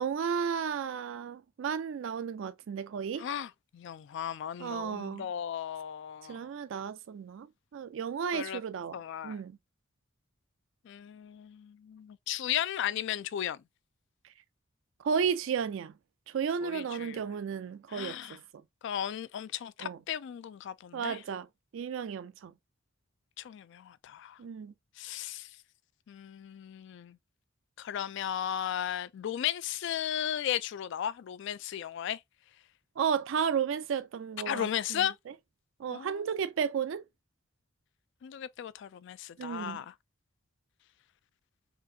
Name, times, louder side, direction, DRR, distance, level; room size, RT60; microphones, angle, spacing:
voice 1, 0.0-3.3 4.6-5.3 6.3-7.5 7.7-9.6 15.0-15.9 16.3-18.4 19.8-20.0 20.9-21.5 21.7-22.5 24.4-24.7 33.0-35.1 35.8-37.0 39.4-39.8, right 7 dB, 70° right, 0.4 m, -33 dB
voice 2, 3.2-6.5 8.3-8.6 8.9-9.4 10.9-13.6 16.6-17.2 17.9-18.4 18.8-21.2 23.4-24.4 25.0-25.5 26.1-27.2 27.8-32.2 34.5-35.1 35.9-36.3 38.2-39.9, left 10 dB, 65° left, 0.3 m, -35 dB
3.8 x 2.7 x 2.6 m
head